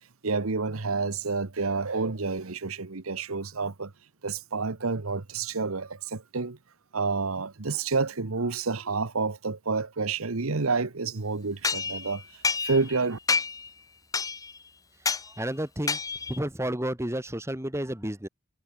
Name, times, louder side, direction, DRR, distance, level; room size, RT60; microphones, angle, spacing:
voice 1, 0.2-3.9 4.2-6.6 6.9-12.2 12.6-13.2, right 4 dB, 75° right, 1.1 m, -29 dB
sound 1, 11.6-13.0 13.3-13.7 14.1-14.6 15.0-15.3 15.9-16.4, left 4 dB, 15° left, 0.9 m, -28 dB
voice 2, 15.4-16.0 16.3-18.3, right 1 dB, 10° right, 1.8 m, -31 dB
head